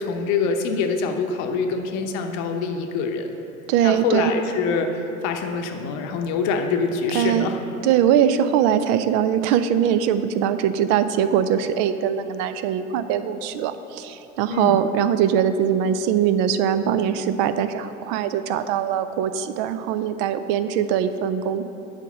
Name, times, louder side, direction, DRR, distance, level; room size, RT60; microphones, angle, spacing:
voice 1, 0.0-3.3 3.8-7.6 14.5-14.8, left 4 dB, 45° left, 5 dB, 0.9 m, -25 dB
voice 2, 3.7-4.3 7.1-7.5 7.8-21.6, right 9 dB, 45° right, 11 dB, 0.5 m, -21 dB
7.5 x 5.0 x 7.2 m, 2.8 s
figure-of-eight pair, 80°, 40 cm